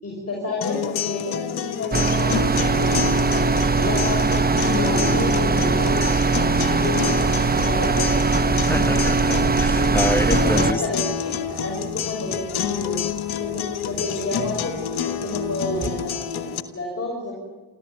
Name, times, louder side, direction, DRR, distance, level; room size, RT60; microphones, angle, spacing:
voice 1, 0.0-3.0 3.7-6.0 6.6-8.3 10.1-13.0 13.4-17.3, left 2 dB, 40° left, -1 dB, 6.6 m, -30 dB
sound 1, 0.6-16.6, left 8 dB, 75° left, 1.4 m, -28 dB
sound 2, 1.9-10.7, right 4 dB, 25° right, 1.0 m, -20 dB
voice 2, 8.7-10.8, equal, 5° left, 10 dB, 1.1 m, -27 dB
sound 3, 9.3-15.9, right 4 dB, 45° right, 3.6 m, -43 dB
25.0 x 14.5 x 7.2 m, 1.3 s
supercardioid pair, 50°, 39 cm